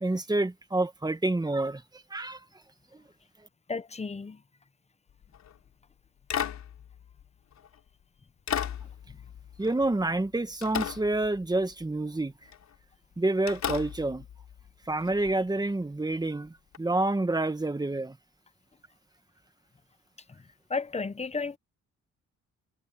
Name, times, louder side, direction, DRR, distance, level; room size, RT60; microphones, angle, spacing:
voice 1, 0.0-1.8 2.1-2.4 9.6-12.3 13.2-14.2 14.9-18.2, right 2 dB, 15° right, 1.7 m, -28 dB
voice 2, 3.7-4.4 9.1-9.2 20.3-20.4 20.7-21.6, left 4 dB, 20° left, 1.0 m, -33 dB
sound 1, 5.2-5.6 6.3-7.8 8.5-10.3 10.6-11.8 12.5-12.7 13.5-15.3 16.7-16.8, left 9 dB, 65° left, 3.6 m, -36 dB
cardioid pair, 90°, 30 cm